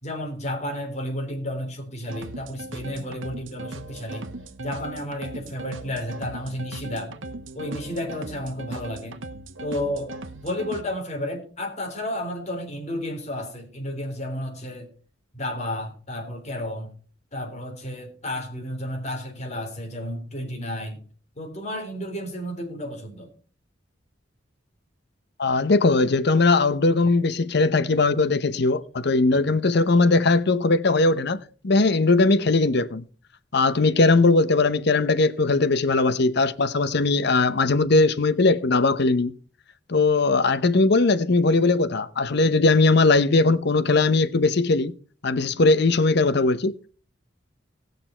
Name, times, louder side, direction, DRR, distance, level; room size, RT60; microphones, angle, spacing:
voice 1, 0.0-4.3 4.6-7.1 7.5-9.2 9.6-10.1 10.4-14.9 15.3-16.9 17.3-21.0 21.3-23.3, left 1 dB, 35° left, 3.5 m, -32 dB
sound 1, 2.1-10.8, right 2 dB, 85° right, 1.2 m, -38 dB
voice 2, 25.4-33.0 33.5-39.3 39.9-44.9 45.2-46.9, left 3 dB, 60° left, 0.8 m, -20 dB
18.0 x 6.7 x 4.4 m
head